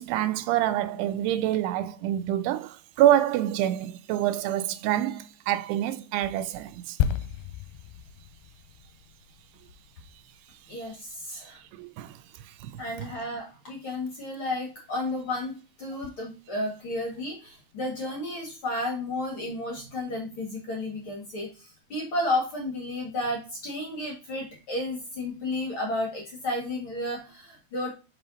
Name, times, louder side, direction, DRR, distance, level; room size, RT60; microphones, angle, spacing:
voice 1, 0.0-7.0 11.7-12.2 12.5-12.8, right 12 dB, 80° right, 2.6 m, -26 dB
sound 1, 7.0-10.7 10.9-11.1, left 9 dB, 85° left, 2.5 m, -32 dB
voice 2, 10.7-11.6 12.8-15.5 15.8-27.9, left 1 dB, 50° left, 1.6 m, -32 dB
5.6 x 5.6 x 3.9 m
omnidirectional pair, 4.8 m